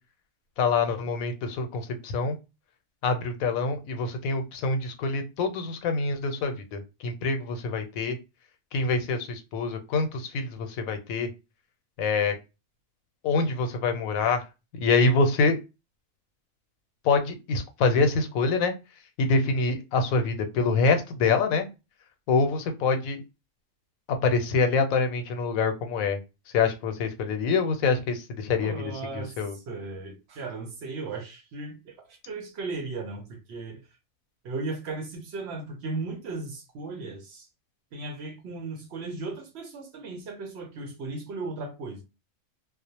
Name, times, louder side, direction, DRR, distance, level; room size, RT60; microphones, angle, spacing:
voice 1, 0.6-2.4 3.0-8.2 8.7-11.3 12.0-12.4 13.2-14.4 14.7-15.6 17.0-18.7 19.2-21.7 22.3-23.2 24.2-26.2 26.5-28.8 29.1-29.6, left 4 dB, 90° left, 1.0 m, -25 dB
voice 2, 28.6-33.8 34.4-37.5 37.9-42.0, right 3 dB, 65° right, 0.7 m, -36 dB
2.3 x 2.0 x 2.8 m
omnidirectional pair, 1.4 m